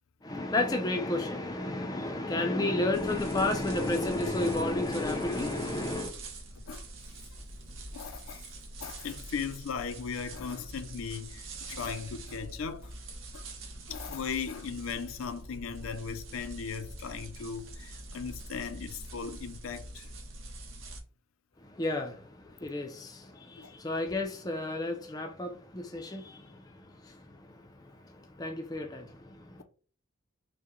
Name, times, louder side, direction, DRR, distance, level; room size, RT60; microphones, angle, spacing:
voice 1, 0.2-6.1 21.6-29.6, left 2 dB, 20° left, 0.4 m, -32 dB
sound 1, 2.9-21.0, right 2 dB, 70° right, 0.8 m, -45 dB
voice 2, 7.9-8.5 8.8-12.9 13.3-13.4 13.9-20.1 23.6-23.7, left 6 dB, 85° left, 0.5 m, -38 dB
4.5 x 2.1 x 3.0 m
head